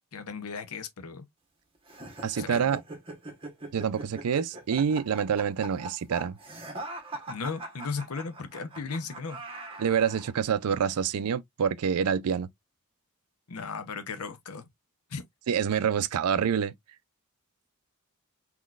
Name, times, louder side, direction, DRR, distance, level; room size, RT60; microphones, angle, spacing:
voice 1, 0.1-1.3 2.4-2.6 7.3-9.4 13.5-14.7 15.1-15.2, left 4 dB, 90° left, 0.8 m, -36 dB
sound 1, 1.9-10.3, right 2 dB, 25° right, 1.1 m, -41 dB
voice 2, 2.2-2.8 3.7-6.4 9.8-12.5 15.5-16.7, right 7 dB, 85° right, 0.4 m, -27 dB
3.9 x 2.9 x 2.4 m
head